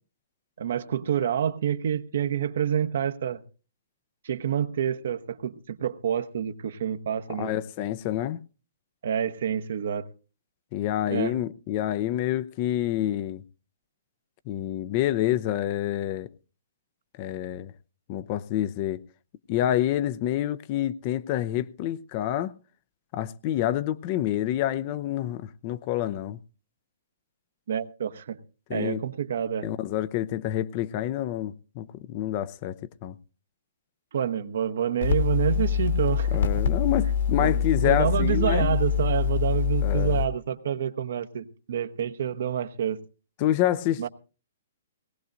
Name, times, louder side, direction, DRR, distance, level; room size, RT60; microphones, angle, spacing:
voice 1, 0.6-3.4 4.2-7.6 9.0-10.1 11.1-11.3 27.7-28.4 28.7-29.8 34.1-36.4 37.4-43.0 44.0-44.1, right 9 dB, 65° right, 0.9 m, -28 dB
voice 2, 7.3-8.4 10.7-13.4 14.5-16.3 17.2-17.7 18.1-19.0 19.5-22.5 23.1-26.4 28.7-29.0 29.6-33.2 36.3-38.8 39.8-40.2 43.4-44.1, left 12 dB, 40° left, 0.6 m, -28 dB
sound 1, 35.0-40.3, left 7 dB, 65° left, 2.2 m, -25 dB
18.5 x 17.5 x 2.6 m
hypercardioid pair, 125°, 0 cm